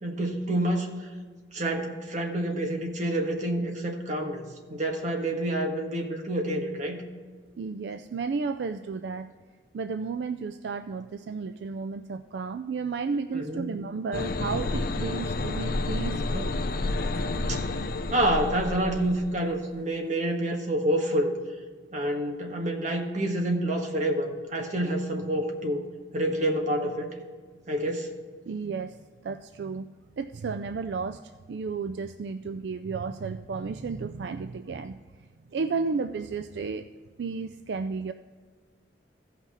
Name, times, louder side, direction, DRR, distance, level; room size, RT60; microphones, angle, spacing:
voice 1, 0.0-0.9 1.5-7.0 13.3-13.7 17.5-17.6 18.1-21.3 21.9-25.8 26.1-27.1 27.7-28.1, right 1 dB, 45° right, 2 dB, 1.5 m, -28 dB
voice 2, 7.6-9.3 9.7-16.6 17.1-17.2 28.5-29.0 29.2-29.9 30.2-36.9 37.2-38.1, right 4 dB, 70° right, 9 dB, 0.4 m, -33 dB
sound 1, 14.1-19.5, left 2 dB, 55° left, 0.6 m, -30 dB
15.5 x 5.9 x 4.2 m, 1.5 s
head